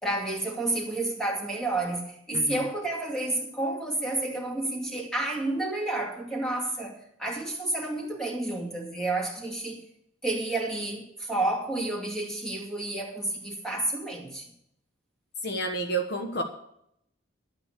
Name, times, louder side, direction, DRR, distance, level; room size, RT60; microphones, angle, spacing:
voice 1, 0.0-9.8 10.2-14.5, right 2 dB, 5° left, 2.4 m, -30 dB
voice 2, 2.3-2.6 15.4-16.4, right 2 dB, 55° left, 1.2 m, -30 dB
11.5 x 9.0 x 6.6 m
head